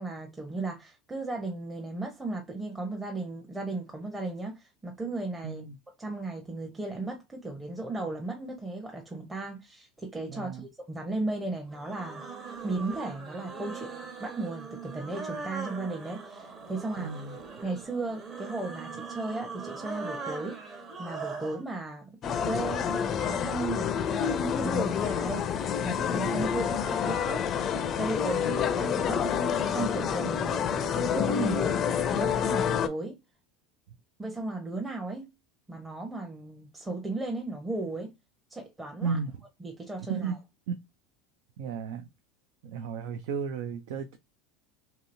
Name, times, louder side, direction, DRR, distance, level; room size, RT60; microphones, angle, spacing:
voice 1, 0.0-5.7 6.0-12.3 12.6-17.1 17.6-22.1 22.4-23.9 24.6-25.5 25.8-27.5 28.0-29.3 29.7-31.8 32.1-33.2 34.2-35.3 35.7-38.1 38.5-39.2 39.6-40.4, right 2 dB, 15° right, 0.8 m, -35 dB
voice 2, 5.4-5.8 10.3-10.7 17.0-17.4 30.3-30.4 39.0-39.3 40.1-40.3 41.6-42.1 42.6-44.2, right 6 dB, 75° right, 0.4 m, -34 dB
sound 1, 11.7-21.6, right 4 dB, 35° right, 1.1 m, -40 dB
sound 2, 22.2-32.9, left 7 dB, 40° left, 0.4 m, -28 dB
2.8 x 2.8 x 2.6 m
supercardioid pair, 100°, 0 cm